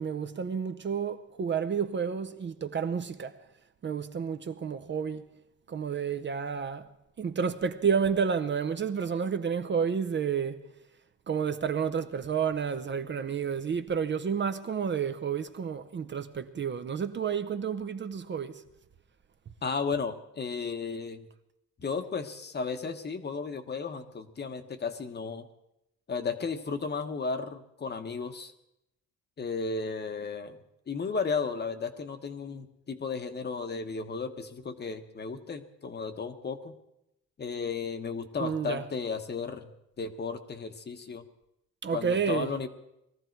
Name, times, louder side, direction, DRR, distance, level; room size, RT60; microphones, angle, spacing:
voice 1, 0.0-3.3 3.8-5.2 5.7-6.8 7.2-10.6 11.3-18.6 38.4-38.8 41.8-42.5, right 6 dB, 35° right, 0.7 m, -30 dB
voice 2, 19.6-21.3 21.8-25.5 26.1-28.5 29.4-30.6 30.9-36.8 37.4-39.7 40.0-41.2 41.9-42.7, left 5 dB, 35° left, 1.1 m, -34 dB
20.5 x 14.0 x 4.6 m
cardioid pair, 140°, 31 cm